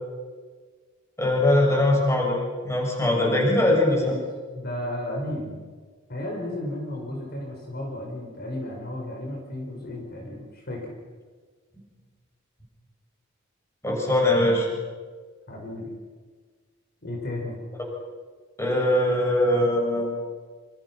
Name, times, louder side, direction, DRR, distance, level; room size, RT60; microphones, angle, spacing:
voice 1, 1.2-2.4 2.6-4.2 13.8-14.7 18.6-20.1, left 1 dB, 15° left, -2 dB, 6.6 m, -21 dB
voice 2, 4.5-5.6 6.1-10.9 15.5-15.9 17.0-17.6, left 1 dB, 50° left, 0 dB, 5.0 m, -33 dB
27.0 x 25.5 x 6.1 m, 1.5 s
head